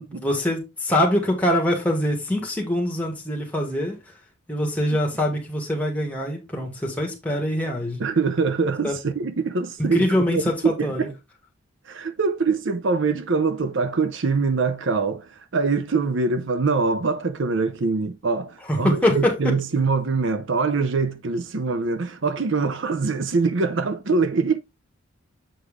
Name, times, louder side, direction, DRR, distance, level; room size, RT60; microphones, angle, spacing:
voice 1, 0.0-4.0 4.5-8.0 8.8-9.0 9.8-11.1 18.7-19.5, left 1 dB, 5° left, 2.0 m, -24 dB
voice 2, 8.0-11.1 11.9-24.6, right 4 dB, 55° right, 0.6 m, -24 dB
8.0 x 4.6 x 3.5 m
head